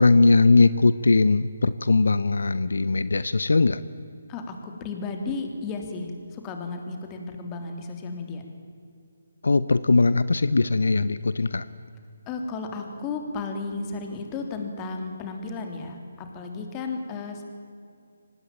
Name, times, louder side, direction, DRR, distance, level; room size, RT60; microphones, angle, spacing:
voice 1, 0.0-3.8 9.4-11.7, left 3 dB, 75° left, 15 dB, 0.8 m, -20 dB
voice 2, 4.3-8.4 12.3-17.4, left 3 dB, 20° left, 4 dB, 3.4 m, -34 dB
24.5 x 19.5 x 9.0 m, 2.4 s
figure-of-eight pair, 150°, 0 cm